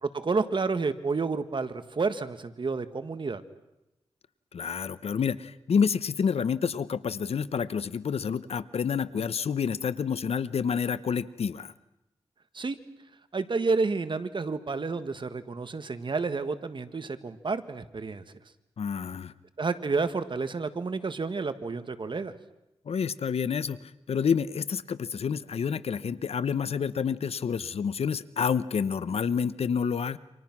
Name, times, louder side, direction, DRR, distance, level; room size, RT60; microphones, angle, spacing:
voice 1, 0.0-3.4 12.5-12.8 13.3-18.2 19.6-22.3, right 4 dB, 50° right, 11 dB, 1.6 m, -30 dB
voice 2, 4.5-11.7 18.8-19.3 22.9-23.8 24.1-30.2, left 6 dB, 75° left, 16 dB, 0.9 m, -28 dB
29.0 x 25.5 x 6.1 m, 0.93 s
cardioid pair, 65°, 10 cm